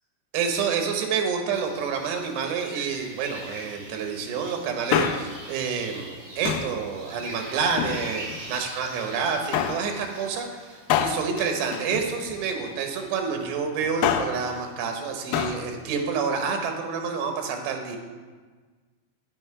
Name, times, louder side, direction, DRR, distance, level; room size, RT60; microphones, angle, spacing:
voice 1, 0.3-18.0, right 6 dB, 90° right, 4 dB, 3.2 m, -28 dB
sound 1, 1.5-13.5, right 2 dB, 45° right, 2.7 m, -43 dB
Male speech man speaking, 4.7-5.5 6.4-6.8 7.6-8.4 9.5-9.9 10.9-12.6 13.8-14.5 15.3-15.7 15.9-16.0, left 9 dB, 90° left, 2.1 m, -27 dB
9.9 x 7.9 x 4.8 m, 1.4 s
omnidirectional pair, 4.8 m